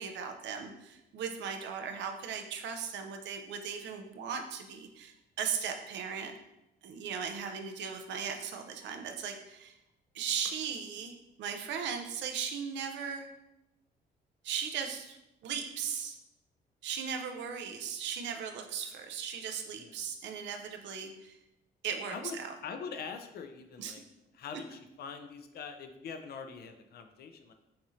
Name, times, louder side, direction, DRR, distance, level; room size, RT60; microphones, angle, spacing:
voice 1, 0.0-6.3 6.8-9.8 10.1-13.3 14.4-16.2 16.8-21.4 21.8-22.5 23.8-24.0, right 7 dB, 85° right, 5 dB, 0.6 m, -37 dB
voice 2, 22.1-24.0 24.4-27.5, left 5 dB, 60° left, 7 dB, 0.5 m, -43 dB
5.9 x 2.6 x 3.1 m, 0.91 s
cardioid pair, 120°, 18 cm